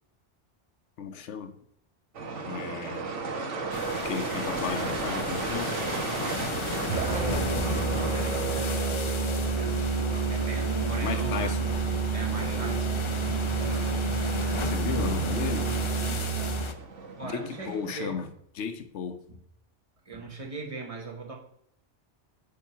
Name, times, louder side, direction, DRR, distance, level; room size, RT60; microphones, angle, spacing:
voice 1, 1.0-1.6 2.4-3.1 4.0-5.8 11.0-11.7 14.6-15.7 17.2-18.3 18.5-19.2, left 7 dB, 75° left, 9 dB, 1.1 m, -34 dB
sound 1, 2.1-18.1, right 4 dB, 80° right, 1.3 m, -37 dB
sound 2, 3.7-16.7, left 4 dB, 45° left, 0.4 m, -35 dB
voice 2, 6.9-9.1 9.4-9.6 10.3-11.5 12.1-13.8 14.1-14.4 17.2-18.2 19.3-19.4 20.0-21.4, right 3 dB, 30° right, 0 dB, 1.4 m, -40 dB
Musical instrument, 6.9-16.8, right 5 dB, 45° right, 0.6 m, -29 dB
8.7 x 3.1 x 5.6 m, 0.72 s
omnidirectional pair, 1.2 m